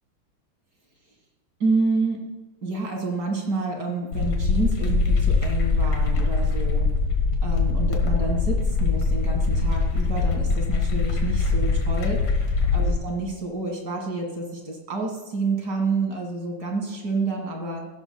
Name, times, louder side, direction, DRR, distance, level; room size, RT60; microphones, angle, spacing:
voice 1, 1.6-2.3 2.6-6.9 7.4-12.4 12.7-17.9, right 3 dB, 55° right, 1 dB, 2.3 m, -28 dB
sound 1, 4.1-12.9, left 4 dB, 75° left, 2.1 m, -22 dB
15.0 x 12.0 x 2.3 m, 1.3 s
omnidirectional pair, 2.1 m